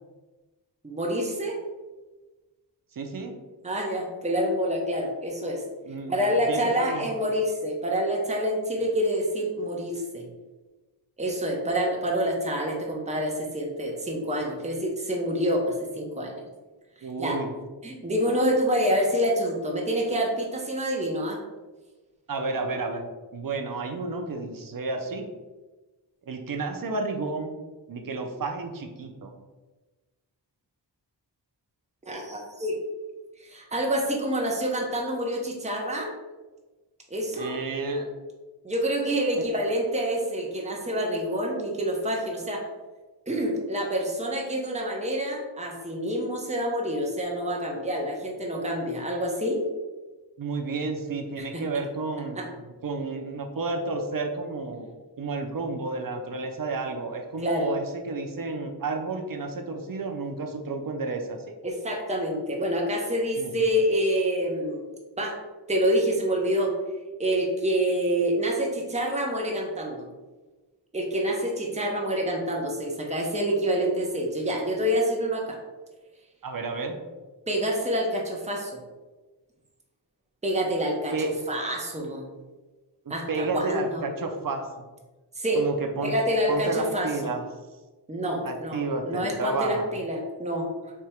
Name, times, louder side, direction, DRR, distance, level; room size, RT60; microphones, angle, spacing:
voice 1, 0.8-1.6 3.6-5.6 6.1-10.2 11.2-16.3 17.2-17.4 17.8-21.4 32.1-32.7 33.4-36.1 37.1-37.5 38.6-42.6 43.3-49.6 51.4-51.5 52.4-52.5 57.4-57.8 61.6-64.8 65.2-65.3 65.7-66.7 67.2-70.0 70.9-75.6 77.5-78.8 80.4-81.1 81.5-82.2 83.1-84.0 85.4-85.7 86.0-87.3 88.1-88.8 89.1-90.9, equal, 15° right, -1 dB, 0.8 m, -27 dB
voice 2, 2.9-3.4 5.8-7.1 17.0-17.5 22.3-25.3 26.3-27.5 27.9-29.3 37.3-38.1 39.4-39.5 50.4-52.4 52.8-54.9 55.2-61.4 63.4-63.7 76.4-77.0 81.1-81.3 83.1-84.8 85.5-86.1 86.5-87.4 88.4-89.9, right 3 dB, 50° right, 4 dB, 0.7 m, -31 dB
3.5 x 2.9 x 4.4 m, 1.2 s
wide cardioid pair, 85°, 43 cm